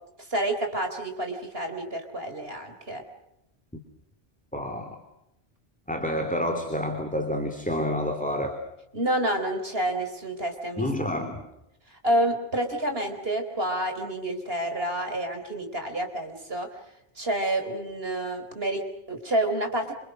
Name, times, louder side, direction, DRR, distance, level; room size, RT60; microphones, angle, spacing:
voice 1, 0.3-3.0 8.9-10.9 11.9-16.7 17.2-19.9, right 1 dB, 65° right, 6 dB, 4.6 m, -29 dB
voice 2, 4.5-5.0 5.9-8.6 10.8-11.5, equal, 5° left, 4 dB, 3.0 m, -29 dB
27.5 x 27.5 x 6.4 m, 0.85 s
omnidirectional pair, 1.1 m